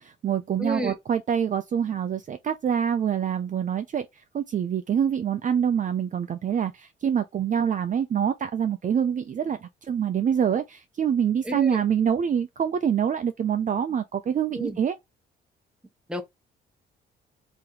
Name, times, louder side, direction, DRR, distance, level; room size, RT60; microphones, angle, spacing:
voice 1, 0.0-4.0 4.3-15.0, right 8 dB, 40° right, 0.5 m, -25 dB
voice 2, 0.6-0.9 11.4-11.8 14.5-14.8 16.1-16.2, right 1 dB, 5° right, 1.0 m, -30 dB
3.1 x 2.9 x 3.9 m
cardioid pair, 90°, 20 cm